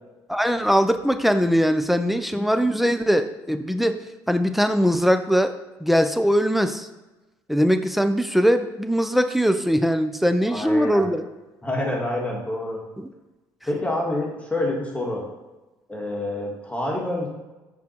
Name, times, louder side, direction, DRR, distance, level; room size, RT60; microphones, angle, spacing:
voice 1, 0.3-4.0 4.3-5.5 5.8-6.9 7.5-11.2 13.0-13.1, equal, ahead, 9 dB, 0.5 m, -21 dB
voice 2, 10.4-11.1 11.6-12.8 13.7-15.2 15.9-17.3, left 1 dB, 15° left, -2 dB, 1.8 m, -27 dB
6.0 x 3.8 x 4.4 m, 1.1 s
supercardioid pair, 70°, 9 cm